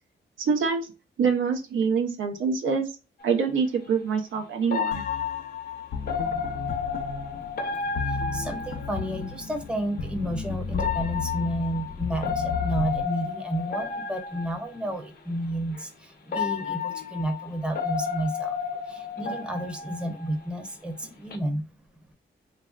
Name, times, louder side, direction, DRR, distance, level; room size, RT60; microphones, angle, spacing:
voice 1, 0.4-0.9 1.2-2.9 3.2-5.0, right 5 dB, 90° right, 3 dB, 0.8 m, -25 dB
sound 1, 3.2-3.3 4.7-9.4 10.7-14.9 15.7-15.8 16.3-20.7 21.0-21.4, left 6 dB, 50° left, 0.7 m, -32 dB
sound 2, 4.9-13.0, left 5 dB, 90° left, 0.7 m, -34 dB
voice 2, 8.1-18.6 18.9-21.6, right 1 dB, 5° right, 4 dB, 0.7 m, -31 dB
3.2 x 2.5 x 2.3 m, 0.29 s
cardioid pair, 100°, 20 cm